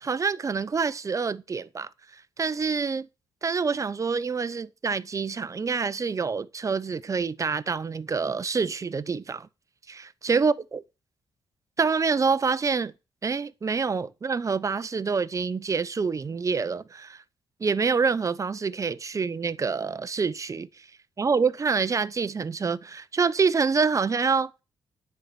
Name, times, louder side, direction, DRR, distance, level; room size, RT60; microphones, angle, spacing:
voice 1, 0.0-1.9 2.4-3.1 3.4-9.5 9.9-10.8 11.8-12.9 13.2-17.2 17.6-20.7 21.2-24.5, right 5 dB, 35° right, 0.7 m, -26 dB
9.9 x 4.6 x 6.8 m
cardioid pair, 70°, 9 cm